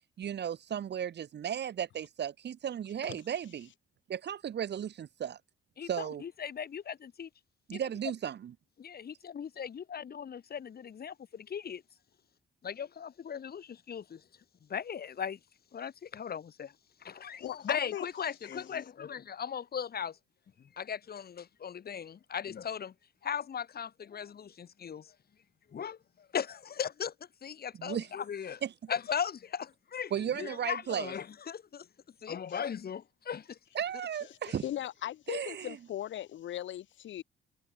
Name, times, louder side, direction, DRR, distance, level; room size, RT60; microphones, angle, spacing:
voice 1, 0.2-3.7 4.1-5.4 5.9-6.2 7.7-8.5 27.8-28.1 28.6-28.9 30.1-31.1 33.7-34.6 35.3-35.8, right 9 dB, 60° right, 2.9 m, -35 dB
voice 2, 5.8-7.3 7.7-7.8 8.8-11.8 12.6-14.3 14.7-15.4 15.7-20.2 20.6-22.9 23.2-25.1 25.7-28.6 28.9-31.9 32.2-33.6 34.5-34.6, left 7 dB, 50° left, 4.4 m, -38 dB
voice 3, 17.4-18.0 18.4-18.6 34.6-37.2, left 12 dB, 70° left, 1.5 m, -38 dB
cardioid pair, 90°, 20 cm